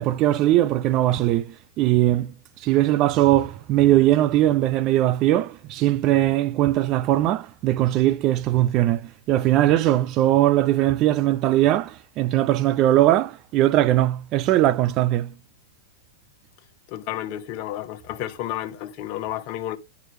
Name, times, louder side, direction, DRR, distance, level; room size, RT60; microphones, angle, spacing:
voice 1, 0.0-2.3 2.6-15.3, right 14 dB, 40° right, 0.5 m, -20 dB
voice 2, 16.9-19.8, left 12 dB, 50° left, 0.9 m, -31 dB
10.5 x 4.7 x 3.3 m
hypercardioid pair, 120°, 0 cm